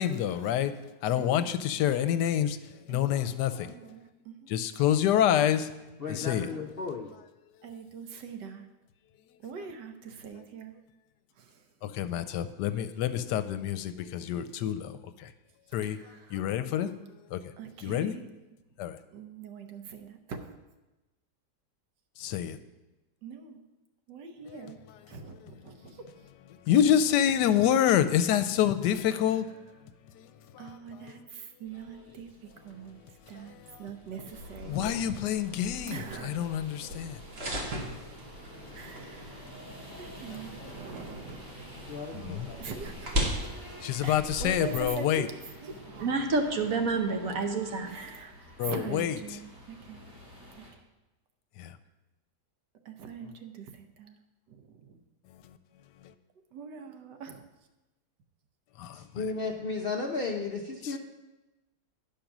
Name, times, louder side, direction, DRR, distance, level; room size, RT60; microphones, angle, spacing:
voice 1, 0.0-3.7 4.5-5.7 6.1-6.5 11.8-15.3 15.7-16.0 16.3-16.9 17.3-17.4 17.8-18.1 18.8-19.0 22.2-22.6 24.5-24.7 25.4-25.5 26.7-29.5 30.1-30.8 33.3-33.8 34.7-37.2 40.5-40.7 42.2-42.5 43.8-45.3 48.6-49.2 51.6-51.8 55.4-55.5 58.8-59.0 60.8-61.0, left 10 dB, 80° left, 12 dB, 1.2 m, -27 dB
voice 2, 1.2-1.6 2.9-4.5 6.2-6.7 7.6-8.7 9.4-10.7 11.4-11.6 15.8-16.5 17.6-18.3 19.1-20.5 23.2-23.6 24.1-24.8 25.1-26.0 30.6-32.3 32.6-33.0 33.3-34.9 35.9-36.5 38.7-39.4 40.0-41.7 42.1-43.5 43.9-45.8 47.8-48.3 48.6-50.0 52.8-54.2 54.5-55.0 56.5-57.4, right 6 dB, 90° right, 6 dB, 1.5 m, -43 dB
voice 3, 6.0-7.1 41.9-42.8 53.2-53.3 58.9-61.0, left 4 dB, 55° left, 1 dB, 0.6 m, -34 dB
sound 1, 31.7-50.7, equal, 15° right, 1.6 m, -50 dB
sound 2, 34.3-44.9, equal, 40° right, 1.5 m, -38 dB
voice 4, 45.8-48.3, right 3 dB, 60° right, 5 dB, 1.2 m, -29 dB
10.0 x 5.3 x 6.0 m, 1.0 s
omnidirectional pair, 1.8 m